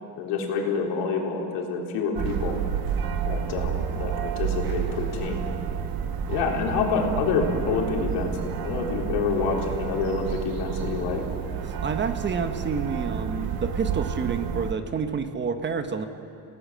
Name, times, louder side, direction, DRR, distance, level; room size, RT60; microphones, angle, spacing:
voice 1, 0.2-2.6 3.2-5.4 6.3-11.2, left 4 dB, 85° left, 1 dB, 4.0 m, -27 dB
sound 1, 2.2-14.7, right 7 dB, 55° right, 1.6 m, -30 dB
voice 2, 11.8-16.1, right 5 dB, 25° right, 8 dB, 1.2 m, -29 dB
28.5 x 18.0 x 7.6 m, 2.6 s
cardioid pair, 150°, 42 cm